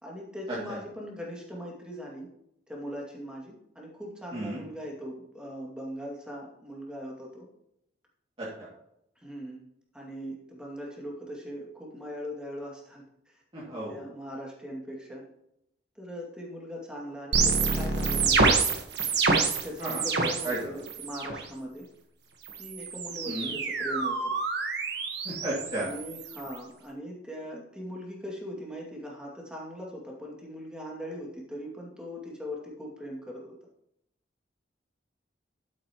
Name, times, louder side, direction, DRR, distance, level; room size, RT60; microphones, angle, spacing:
voice 1, 0.0-2.3 2.7-7.5 9.2-9.6 9.9-15.3 16.0-18.7 19.6-21.9 22.6-24.3 25.7-33.5, equal, 5° right, -2 dB, 2.3 m, -40 dB
voice 2, 13.5-14.0 19.8-20.0 20.4-20.8 23.3-23.5 25.2-25.9, right 1 dB, 30° right, -8 dB, 2.4 m, -33 dB
sound 1, 17.3-20.6 20.9-21.4 22.4-26.6, right 4 dB, 65° right, 1.4 m, -27 dB
12.0 x 8.4 x 3.0 m, 0.78 s
head